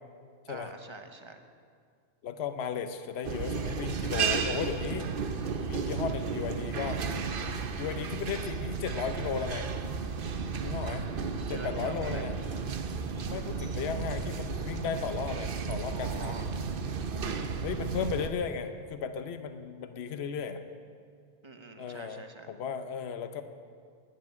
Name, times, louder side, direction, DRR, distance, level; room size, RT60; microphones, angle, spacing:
voice 1, 0.5-1.4 11.5-12.3 15.9-16.5 21.4-22.5, right 3 dB, 25° right, 6 dB, 1.0 m, -45 dB
voice 2, 2.2-5.1 5.4-7.0 7.7-9.7 10.6-11.1 11.5-12.3 13.3-16.5 17.6-20.6 21.8-22.2 22.5-23.4, left 7 dB, 70° left, 9 dB, 1.0 m, -35 dB
sound 1, 3.2-18.3, right 5 dB, 55° right, 0.9 m, -33 dB
11.0 x 9.8 x 9.5 m, 2.1 s
omnidirectional pair, 1.2 m